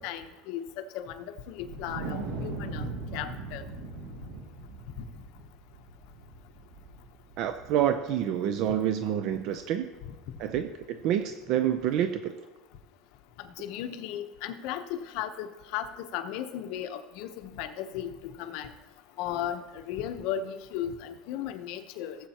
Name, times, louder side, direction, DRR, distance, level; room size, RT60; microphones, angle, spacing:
voice 1, 0.0-3.6 13.4-18.7 19.2-22.2, left 10 dB, 60° left, 7 dB, 0.9 m, -36 dB
Wind, 1.6-8.2, right 3 dB, 85° right, 2.3 m, -39 dB
voice 2, 7.4-9.9 10.4-12.3, right 10 dB, 50° right, 8 dB, 0.6 m, -28 dB
17.5 x 8.0 x 2.9 m, 1.1 s
cardioid pair, 155°, 0 cm